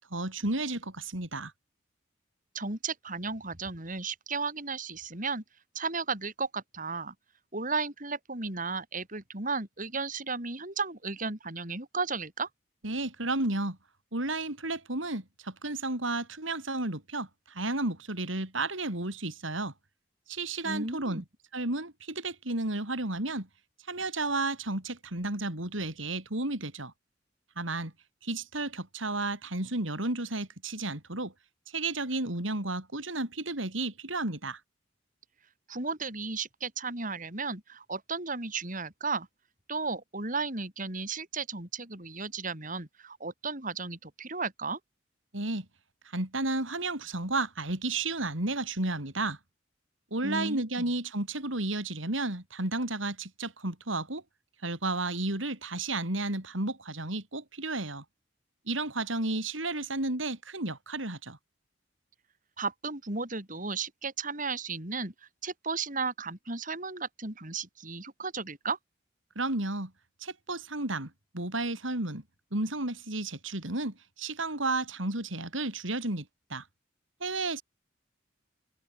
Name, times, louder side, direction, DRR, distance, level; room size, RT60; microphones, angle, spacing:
voice 1, 0.1-1.5 12.8-13.8 14.1-19.7 20.3-21.2 21.5-23.5 23.9-26.9 27.6-27.9 28.2-31.3 31.7-34.6 45.3-45.7 46.1-49.4 50.1-54.2 54.6-58.0 58.7-61.4 69.3-69.9 70.2-72.2 72.5-76.6 77.2-77.6, right 2 dB, 85° right, 5.1 m, -32 dB
voice 2, 2.5-5.4 5.7-7.1 7.5-12.5 20.6-21.2 35.7-39.3 39.7-44.8 50.2-50.8 62.6-65.1 65.4-68.8, right 4 dB, 45° right, 4.3 m, -34 dB
head